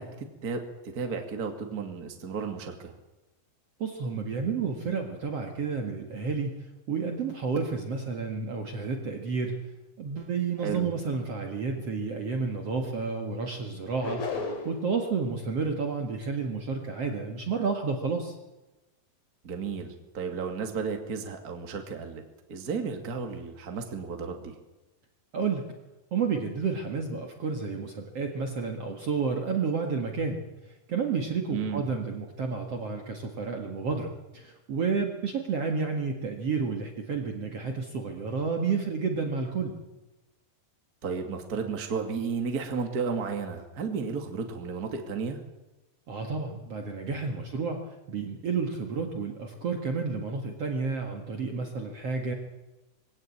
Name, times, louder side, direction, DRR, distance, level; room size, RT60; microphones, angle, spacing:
voice 1, 0.0-2.9 10.6-10.9 19.4-22.2 22.5-24.6 31.5-31.8 41.0-45.4, right 5 dB, 30° right, 4 dB, 2.4 m, -33 dB
voice 2, 3.8-6.6 6.9-9.6 10.0-14.2 14.6-18.3 25.3-25.7 26.1-30.4 30.9-39.8 46.1-47.8 48.1-52.3, right 5 dB, 50° right, 3 dB, 2.6 m, -30 dB
sound 1, 14.0-14.9, left 4 dB, 50° left, 4.0 m, -33 dB
22.5 x 17.0 x 8.6 m, 1.0 s
omnidirectional pair, 4.2 m